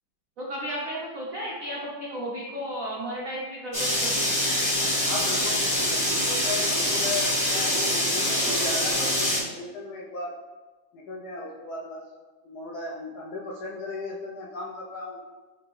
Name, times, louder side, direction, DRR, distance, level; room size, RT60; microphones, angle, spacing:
voice 1, 0.4-4.3, equal, 75° right, -4 dB, 0.7 m, -34 dB
sound 1, 3.7-9.4, left 1 dB, 25° left, 0.4 m, -25 dB
voice 2, 5.0-10.3 10.9-12.0 12.4-15.2, left 3 dB, 70° left, -4 dB, 0.9 m, -36 dB
5.8 x 2.6 x 3.0 m, 1.3 s
omnidirectional pair, 2.2 m